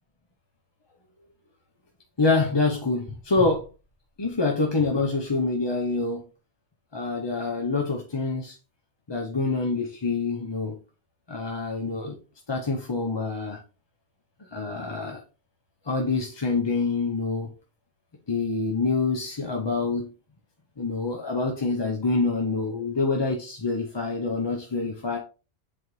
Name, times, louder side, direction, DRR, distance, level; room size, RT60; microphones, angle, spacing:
voice 1, 2.2-3.7 4.2-6.2 6.9-8.6 9.1-10.8 11.3-12.2 12.5-13.6 14.4-15.2 15.8-17.5 18.3-20.1 20.8-25.2, left 3 dB, 30° left, 0.7 m, -26 dB
7.7 x 4.0 x 3.1 m
omnidirectional pair, 1.1 m